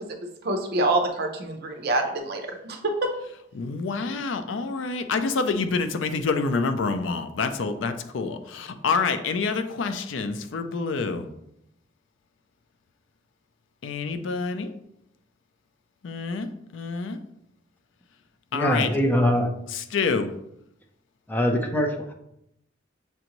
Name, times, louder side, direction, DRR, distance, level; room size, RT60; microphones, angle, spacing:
voice 1, 0.4-3.1, right 2 dB, 55° right, 4 dB, 0.7 m, -26 dB
voice 2, 3.5-11.3 13.8-14.7 16.0-17.2 18.5-18.9 19.9-20.3, left 4 dB, 70° left, 9 dB, 0.4 m, -27 dB
voice 3, 18.5-19.5 21.3-22.1, equal, 10° left, 3 dB, 0.5 m, -23 dB
6.7 x 2.6 x 3.0 m, 0.79 s
head